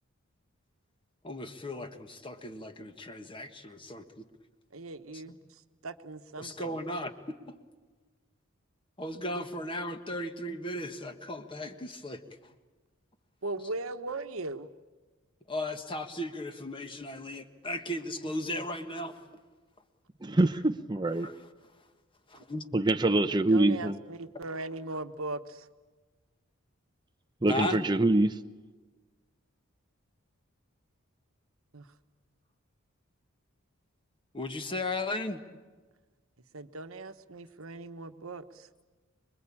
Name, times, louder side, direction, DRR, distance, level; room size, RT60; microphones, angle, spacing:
voice 1, 1.2-4.3 5.1-5.4 6.4-7.5 9.0-12.4 15.5-19.1 21.2-21.3 22.5-22.6 27.5-27.8 34.3-35.4, left 1 dB, 25° left, 7 dB, 1.5 m, -36 dB
voice 2, 4.7-6.8 13.4-14.7 23.5-25.7 31.7-31.9 36.5-38.7, right 2 dB, 75° right, 9 dB, 1.2 m, -39 dB
voice 3, 20.2-21.3 22.7-24.0 27.4-28.4, right 2 dB, 20° right, 7 dB, 0.7 m, -25 dB
25.5 x 22.5 x 8.7 m, 1.3 s
head